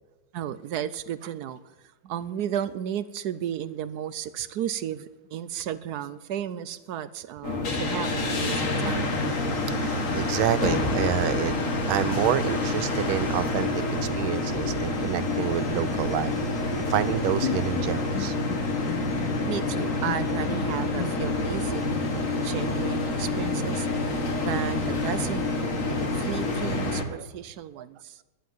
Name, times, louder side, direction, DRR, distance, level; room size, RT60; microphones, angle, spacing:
voice 1, 0.3-1.6 2.0-9.2 19.5-28.2, right 10 dB, 70° right, 0.9 m, -34 dB
sound 1, 7.4-27.0, left 2 dB, 40° left, 1.8 m, -27 dB
voice 2, 9.7-11.5 11.9-16.3 16.8-18.3 27.2-27.3 27.8-27.9, right 11 dB, 90° right, 1.5 m, -28 dB
Bowed string instrument, 16.7-21.6, left 10 dB, 65° left, 1.0 m, -36 dB
11.5 x 10.0 x 9.3 m
omnidirectional pair, 2.2 m